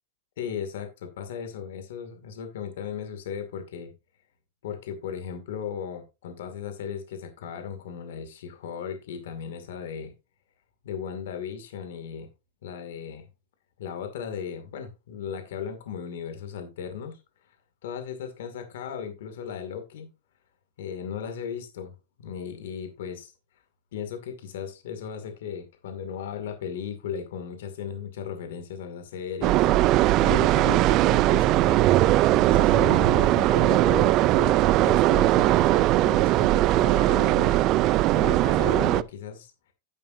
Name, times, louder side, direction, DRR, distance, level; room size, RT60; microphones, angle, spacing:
voice 1, 0.4-3.9 4.6-10.1 10.8-12.3 12.6-13.3 13.8-17.2 17.8-20.1 20.8-21.9 22.2-23.3 23.9-31.9 32.3-37.7 38.1-39.5, left 7 dB, 70° left, 7 dB, 2.3 m, -36 dB
sound 1, 29.4-39.0, right 16 dB, 30° right, 0.4 m, -20 dB
10.5 x 8.7 x 2.7 m, 0.25 s
supercardioid pair, 160°, 0 cm